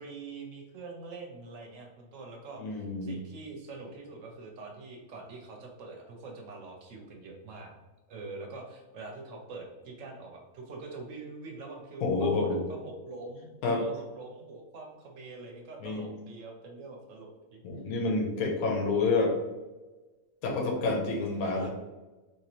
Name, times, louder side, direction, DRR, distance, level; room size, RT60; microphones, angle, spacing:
voice 1, 0.0-7.7 8.1-17.6 21.4-21.7, right 3 dB, 65° right, 1 dB, 1.0 m, -44 dB
voice 2, 2.6-3.1 12.0-12.6 13.6-13.8 15.8-16.0 17.6-19.4 20.4-21.7, left 3 dB, 85° left, 1 dB, 1.2 m, -28 dB
3.1 x 3.0 x 2.9 m, 1.2 s
omnidirectional pair, 1.5 m